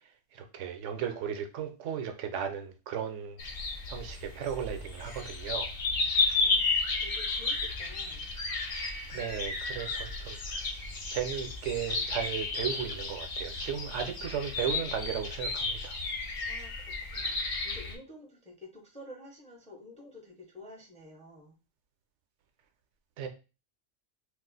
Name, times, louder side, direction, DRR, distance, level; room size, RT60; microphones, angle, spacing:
voice 1, 0.3-3.4 3.9-5.7 9.1-10.7 11.1-16.0 23.2-23.3, right 8 dB, 80° right, 6 dB, 0.9 m, -35 dB
sound 1, 3.4-17.9, left 3 dB, 55° left, 0.8 m, -33 dB
voice 2, 6.4-8.3 16.5-16.7 17.1-21.6, left 2 dB, 10° left, 0 dB, 0.4 m, -50 dB
2.4 x 2.4 x 3.8 m, 0.31 s
omnidirectional pair, 1.2 m